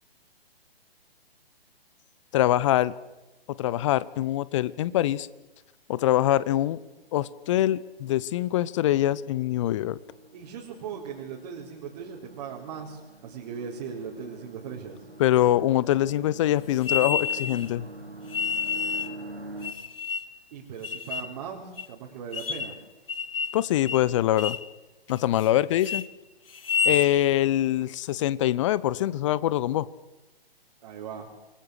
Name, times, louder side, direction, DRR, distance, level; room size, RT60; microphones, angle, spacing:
voice 1, 2.3-2.9 3.6-5.3 5.9-6.8 7.1-10.0 15.2-17.9 23.5-24.6 25.1-26.1 26.8-29.9, left 13 dB, 30° left, 19 dB, 0.9 m, -24 dB
sound 1, 6.8-19.7, right 2 dB, 85° right, 5.0 m, -46 dB
voice 2, 10.3-15.1 20.5-22.8 30.8-31.3, right 7 dB, 35° right, -2 dB, 4.3 m, -39 dB
sound 2, 16.8-17.7 18.3-19.1 19.6-20.4 20.8-21.3 21.8-21.9 22.3-22.8 23.1-23.6 23.9-24.1 24.4-24.7 25.1-25.5 25.8-26.0 26.5-27.1, left 5 dB, 65° left, 1.6 m, -29 dB
27.5 x 23.0 x 6.5 m, 1.0 s
figure-of-eight pair, 130°, 31 cm